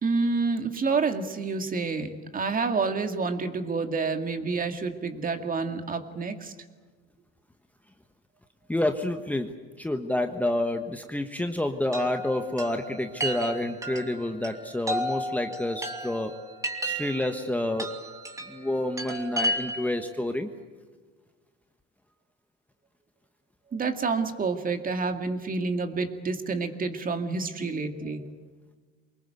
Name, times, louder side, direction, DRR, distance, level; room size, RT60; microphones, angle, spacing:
voice 1, 0.0-6.5 23.7-28.3, right 4 dB, 30° right, 6 dB, 2.2 m, -28 dB
voice 2, 8.7-16.3 16.8-18.0 18.5-20.5, left 1 dB, 5° left, 5 dB, 1.3 m, -29 dB
Chime, 11.9-20.0, right 1 dB, 10° right, 2.9 m, -33 dB
24.5 x 21.0 x 8.1 m, 1.5 s
supercardioid pair, 105°, 30 cm